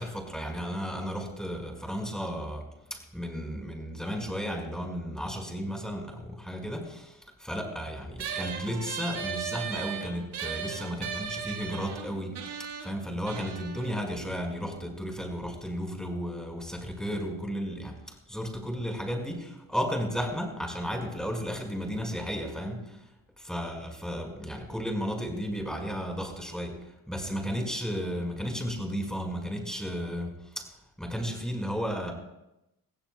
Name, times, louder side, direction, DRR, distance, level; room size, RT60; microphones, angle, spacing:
voice 1, 0.0-2.6 2.9-23.1 23.4-26.8 27.1-30.7 31.0-32.1, equal, ahead, 1 dB, 5.3 m, -34 dB
sound 1, 8.2-15.0, right 7 dB, 60° right, 1.9 m, -38 dB
23.0 x 16.0 x 2.3 m, 0.90 s
hypercardioid pair, 40°, 46 cm